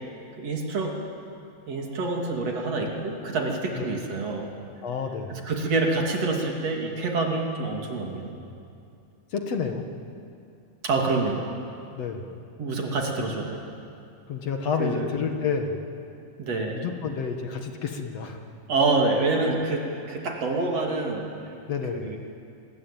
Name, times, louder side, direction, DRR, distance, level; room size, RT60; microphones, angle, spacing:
voice 1, 0.4-0.9 1.7-4.5 5.4-8.3 10.8-11.5 12.6-13.6 14.8-15.1 16.4-16.8 18.7-21.3 21.9-22.2, right 3 dB, 55° right, 0 dB, 3.8 m, -26 dB
voice 2, 4.8-5.4 9.3-9.9 12.0-12.4 14.3-15.9 16.7-18.4 21.7-22.1, left 6 dB, 60° left, 4 dB, 2.5 m, -29 dB
25.5 x 21.5 x 9.1 m, 2.5 s
omnidirectional pair, 3.6 m